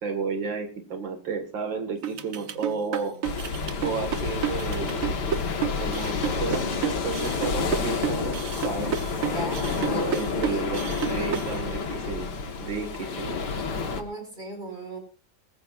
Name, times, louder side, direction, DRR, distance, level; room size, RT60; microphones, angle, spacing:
voice 1, 0.0-3.1 3.8-5.3 5.8-8.4 8.6-9.0 9.8-10.8 11.1-12.3 12.6-13.4, right 4 dB, 90° right, 5 dB, 2.7 m, -32 dB
sound 1, 2.0-11.5, right 10 dB, 50° right, 1.3 m, -30 dB
voice 2, 2.1-3.2 9.3-10.6 13.5-15.0, right 2 dB, 25° right, 3 dB, 5.4 m, -39 dB
sound 2, 3.2-14.0, left 5 dB, 65° left, 2.2 m, -29 dB
20.5 x 15.0 x 2.5 m, 0.37 s
omnidirectional pair, 2.0 m